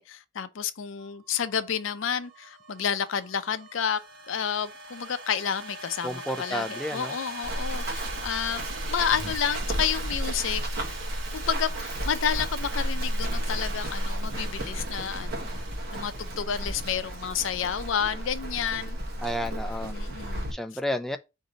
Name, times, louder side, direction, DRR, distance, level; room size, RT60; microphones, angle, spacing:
voice 1, 0.0-4.0 4.3-10.8 11.3-15.5 15.9-19.0 19.8-20.5, left 8 dB, 90° left, 0.5 m, -30 dB
sound 1, 1.0-19.3, right 3 dB, 90° right, 0.9 m, -43 dB
voice 2, 6.0-7.2 19.2-19.9 20.5-21.2, equal, ahead, 0.3 m, -31 dB
Run, 7.4-20.5, equal, 55° right, 1.1 m, -32 dB
5.0 x 2.7 x 3.9 m
head